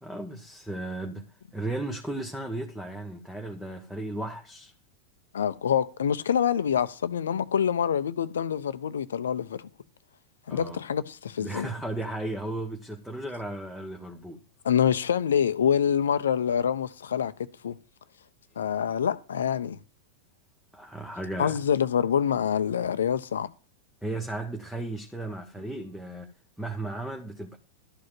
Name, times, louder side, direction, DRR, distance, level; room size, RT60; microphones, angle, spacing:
voice 1, 0.0-4.7 10.5-10.8 11.4-14.4 20.7-21.6 24.0-26.3 26.6-27.6, right 2 dB, 5° right, 1.4 m, -35 dB
voice 2, 5.3-9.6 10.5-11.7 14.6-17.3 17.6-17.7 18.6-19.8 21.4-23.5, left 8 dB, 65° left, 0.8 m, -26 dB
12.5 x 5.1 x 7.6 m
figure-of-eight pair, 90°, 0 cm